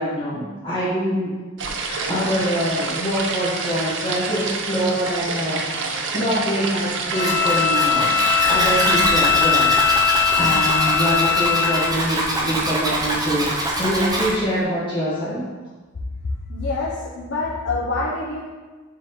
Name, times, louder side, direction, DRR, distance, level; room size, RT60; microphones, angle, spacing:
voice 1, 0.0-1.4 1.7-8.1 8.5-13.5 13.8-15.4, equal, 25° left, -10 dB, 1.4 m, -24 dB
sound 1, 1.6-9.1, right 4 dB, 60° right, 0.6 m, -28 dB
Bowed string instrument, 7.1-12.0, left 7 dB, 10° left, 0.3 m, -20 dB
Zipper (clothing), 7.2-14.3, right 1 dB, 20° right, 0.7 m, -24 dB
voice 2, 16.5-18.5, left 3 dB, 60° left, -4 dB, 0.7 m, -26 dB
6.8 x 3.7 x 3.7 m, 1.3 s
head